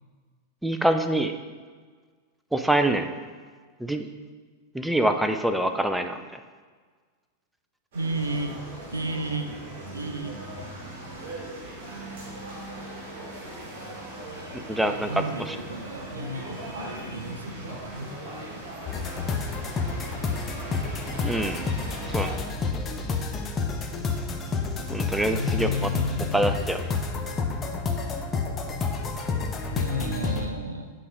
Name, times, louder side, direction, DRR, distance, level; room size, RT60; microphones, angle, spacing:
voice 1, 0.6-1.3 2.5-3.1 3.8-4.1 4.7-6.3 14.7-15.6 21.2-21.7 22.1-22.3 24.9-25.7 26.3-26.8, right 1 dB, 5° right, 7 dB, 0.4 m, -25 dB
sound 1, 7.9-22.3, right 1 dB, 50° right, 1.9 m, -39 dB
voice 2, 7.9-8.6 8.9-9.6 9.9-10.3 14.4-18.1 25.3-26.4 29.7-30.9, equal, 80° right, 7 dB, 0.5 m, -32 dB
sound 2, 18.9-30.5, left 4 dB, 20° left, 0.7 m, -29 dB
8.3 x 4.0 x 4.7 m, 1.5 s
figure-of-eight pair, 90°, 0 cm